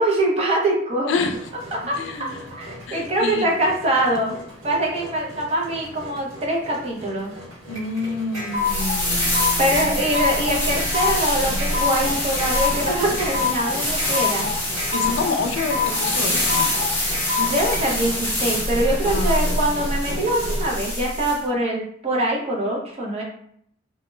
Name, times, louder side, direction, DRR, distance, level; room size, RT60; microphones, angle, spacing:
voice 1, 0.0-1.1 1.7-4.4 4.6-7.3 9.6-14.5 17.4-23.2, right 1 dB, 35° right, -1 dB, 0.6 m, -23 dB
voice 2, 1.1-1.4 1.8-2.5 2.9-3.5 7.7-10.1 11.5-11.6 14.9-16.7 19.0-19.6, left 4 dB, 85° left, 6 dB, 0.4 m, -28 dB
Engine, 1.3-20.7, equal, 80° right, 0.8 m, -38 dB
sound 1, 7.7-17.8, left 5 dB, 15° right, 1.3 m, -26 dB
sound 2, 8.6-21.4, left 1 dB, 10° left, 0.8 m, -25 dB
2.2 x 2.0 x 3.1 m, 0.66 s
head